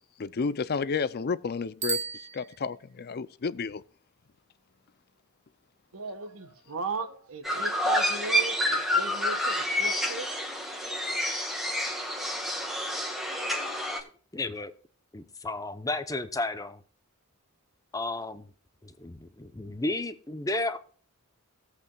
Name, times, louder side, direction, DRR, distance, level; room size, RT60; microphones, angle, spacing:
voice 1, 0.2-2.1 2.3-3.8, left 5 dB, 45° left, 0.5 m, -31 dB
Bicycle bell, 1.8-3.1, right 5 dB, 35° right, 1.1 m, -35 dB
voice 2, 5.9-10.4, right 3 dB, 65° right, 1.4 m, -37 dB
sound 1, 7.4-14.0, equal, ahead, 1.8 m, -28 dB
voice 3, 14.3-14.7 15.1-16.8 17.9-18.5 18.8-20.8, left 2 dB, 15° left, 0.8 m, -33 dB
16.5 x 8.3 x 2.3 m
head